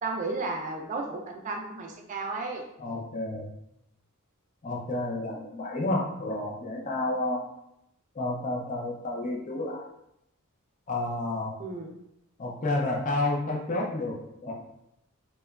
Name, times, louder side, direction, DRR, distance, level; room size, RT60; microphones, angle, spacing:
voice 1, 0.0-2.6 11.6-11.9, right 3 dB, 35° right, 1 dB, 0.3 m, -33 dB
voice 2, 2.8-3.5 4.6-7.4 8.1-9.8 10.9-11.5 12.4-14.5, left 2 dB, 35° left, -2 dB, 0.4 m, -30 dB
2.8 x 2.2 x 2.3 m, 0.81 s
head